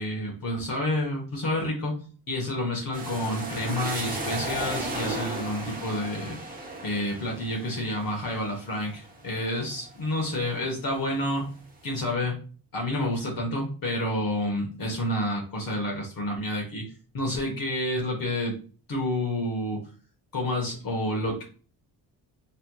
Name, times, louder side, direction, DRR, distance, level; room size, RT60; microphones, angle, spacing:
voice 1, 0.0-1.9 2.3-6.4 6.8-11.4 11.8-12.4 12.7-16.8 17.1-18.5 18.9-19.8 20.3-21.4, left 1 dB, 50° left, -1 dB, 1.2 m, -29 dB
sound 1, 2.9-10.6 11.0-11.8, right 2 dB, 20° right, 1.2 m, -35 dB
3.2 x 3.0 x 2.2 m, 0.39 s
cardioid pair, 75°, 42 cm